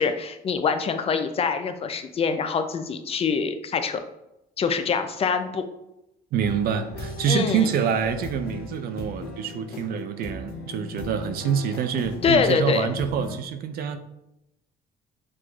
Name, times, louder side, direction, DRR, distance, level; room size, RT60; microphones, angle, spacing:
voice 1, 0.0-4.0 4.6-5.6 7.3-7.7 12.2-12.9, left 5 dB, 35° left, 8 dB, 0.4 m, -24 dB
voice 2, 6.3-14.0, right 7 dB, 65° right, 9 dB, 0.4 m, -26 dB
sound 1, 6.4-13.4, left 2 dB, 65° left, 0.7 m, -37 dB
6.1 x 2.4 x 2.3 m, 0.88 s
cardioid pair, 110°, 17 cm